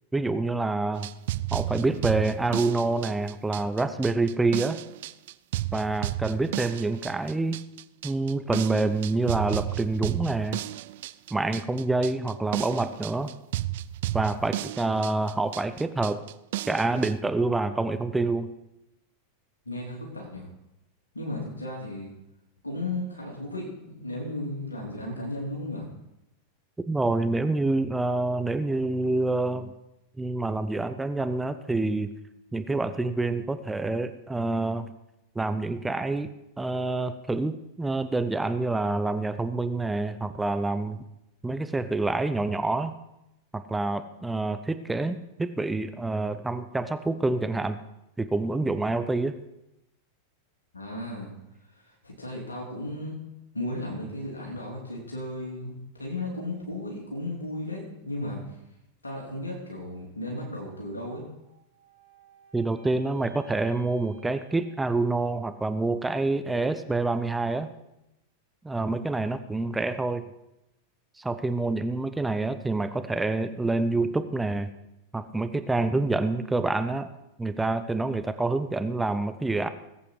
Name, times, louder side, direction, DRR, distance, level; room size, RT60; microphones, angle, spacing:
voice 1, 0.1-1.1 1.5-4.8 5.7-7.6 8.0-10.6 11.3-13.3 14.1-16.2 16.7-18.5 26.9-29.7 30.2-32.1 32.5-34.9 35.3-36.3 36.6-41.0 41.4-42.9 43.5-47.8 48.2-49.4 62.5-67.7 68.6-70.3 71.2-74.7 75.1-77.1 77.4-79.7, right 2 dB, 10° right, 10 dB, 0.7 m, -27 dB
sound 1, 0.9-17.1, right 15 dB, 55° right, 0.4 m, -33 dB
voice 2, 19.6-20.5 21.1-22.1 22.6-25.9 50.7-51.3 51.8-53.1 53.5-58.4 59.0-61.2, left 1 dB, 80° left, -2 dB, 3.3 m, -35 dB
sound 2, 61.4-65.7, right 7 dB, 90° right, 3.5 m, -56 dB
20.0 x 8.6 x 4.8 m, 0.89 s
figure-of-eight pair, 90°, 0 cm